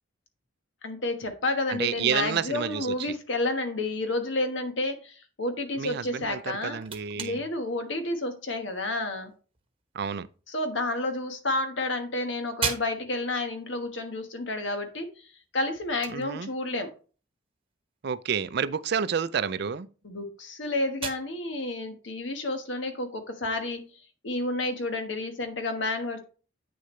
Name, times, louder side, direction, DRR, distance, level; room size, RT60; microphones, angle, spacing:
voice 1, 0.8-6.8 7.2-9.3 10.5-15.1 15.5-16.9 20.0-23.8 24.2-26.2, left 2 dB, 75° left, 1.4 m, -30 dB
voice 2, 1.7-3.2 5.8-7.4 9.9-10.3 16.1-16.5 18.0-19.9, right 7 dB, 60° right, 0.4 m, -30 dB
sound 1, 6.3-23.9, right 6 dB, 30° right, 1.0 m, -42 dB
8.7 x 6.5 x 3.2 m
head